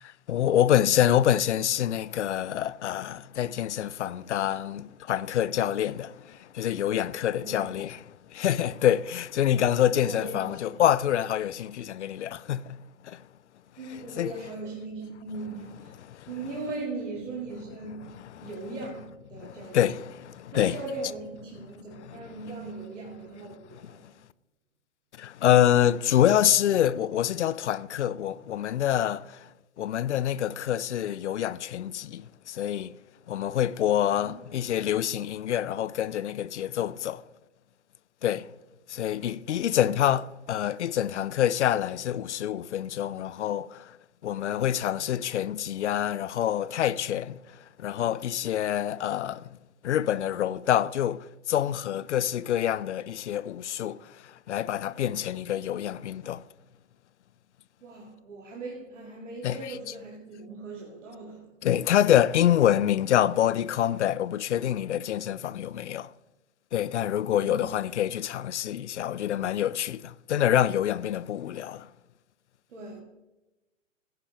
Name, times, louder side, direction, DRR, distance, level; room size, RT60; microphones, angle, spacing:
voice 1, 0.0-12.8 13.0-13.2 13.8-14.5 15.4-15.6 16.0-16.6 17.9-18.8 19.3-21.1 21.9-22.5 23.8-24.0 25.2-29.5 29.8-32.9 33.3-37.2 38.2-38.5 38.9-44.0 44.2-49.5 49.8-56.4 59.4-59.8 61.6-66.1 66.7-71.9, left 11 dB, 60° left, 0.5 m, -26 dB
voice 2, 7.4-7.7 10.1-10.8 13.8-16.0 16.3-19.9 20.5-24.1 34.2-34.6 57.8-61.5 67.3-67.6 72.7-73.0, right 3 dB, 65° right, 2.1 m, -39 dB
16.5 x 9.7 x 2.9 m
figure-of-eight pair, 105°, 39 cm